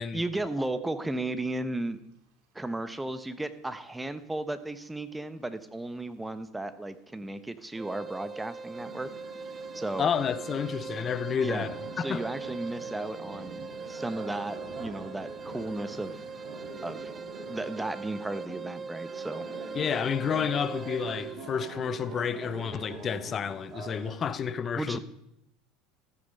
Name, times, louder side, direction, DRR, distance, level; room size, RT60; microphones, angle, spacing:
voice 1, 0.1-2.0 2.5-9.1 9.7-10.1 11.4-11.7 12.0-13.6 13.9-16.2 16.8-17.1 17.5-19.5 24.7-25.0, right 2 dB, 10° right, 1.0 m, -34 dB
sound 1, 2.7-2.8 3.0-3.1 3.8-4.3 5.1-5.2 5.4-5.5 5.8-6.9 7.4-17.9, right 2 dB, 65° right, 3.6 m, -51 dB
sound 2, 7.8-21.4, right 4 dB, 25° right, 0.4 m, -41 dB
sound 3, 8.7-24.2, right 4 dB, 45° right, 3.7 m, -45 dB
voice 2, 10.0-12.3 19.7-25.0, left 7 dB, 35° left, 0.8 m, -30 dB
13.5 x 8.8 x 5.4 m
hypercardioid pair, 80°, 0 cm